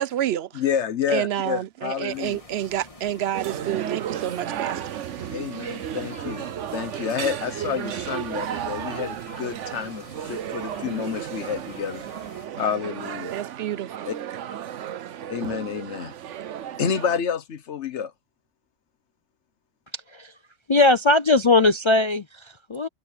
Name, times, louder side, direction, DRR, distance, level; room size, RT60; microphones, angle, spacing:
voice 1, 0.0-0.6 1.1-5.0 13.3-13.9, right 11 dB, 65° right, 0.8 m, -29 dB
voice 2, 0.5-2.4 5.3-12.0 12.6-13.3 14.1-14.2 15.3-16.1 16.8-18.1, left 7 dB, 70° left, 1.3 m, -29 dB
sound 1, 2.1-12.5, left 2 dB, 30° left, 2.2 m, -48 dB
sound 2, 3.3-17.2, right 10 dB, 85° right, 1.1 m, -33 dB
Bird vocalization bird call bird song, 4.2-13.2 13.6-14.7, right 1 dB, 25° right, 4.4 m, -50 dB
voice 3, 19.9-20.3 20.7-22.9, left 3 dB, 45° left, 0.4 m, -20 dB
omnidirectional pair, 1.2 m